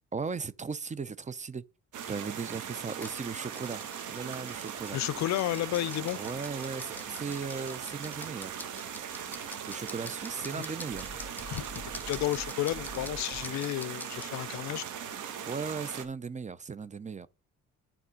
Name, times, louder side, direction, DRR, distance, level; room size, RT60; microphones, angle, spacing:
voice 1, 0.1-1.6 2.1-3.8 4.1-5.0 6.1-8.5 9.6-11.1 15.5-17.3, right 5 dB, 25° right, 0.6 m, -37 dB
sound 1, 1.9-16.0, right 8 dB, 80° right, 1.5 m, -40 dB
sound 2, 2.9-14.3, left 1 dB, 5° left, 1.0 m, -48 dB
sound 3, 4.5-13.5, equal, 45° right, 2.5 m, -50 dB
voice 2, 4.9-6.2 11.5-14.8, left 14 dB, 65° left, 0.4 m, -32 dB
9.6 x 3.6 x 5.0 m
cardioid pair, 90°, 30 cm